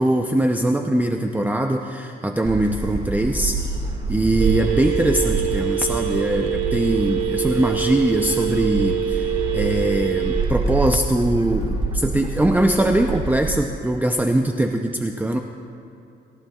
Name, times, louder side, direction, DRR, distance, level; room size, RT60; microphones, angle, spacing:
voice 1, 0.0-3.6 4.1-15.4, right 1 dB, 10° right, 4 dB, 0.6 m, -21 dB
Gull seagull, 2.4-13.6, right 3 dB, 25° right, 1.8 m, -27 dB
Telephone, 4.4-10.4, right 9 dB, 85° right, 2.1 m, -25 dB
23.5 x 14.5 x 2.4 m, 2.6 s
cardioid pair, 90°, 20 cm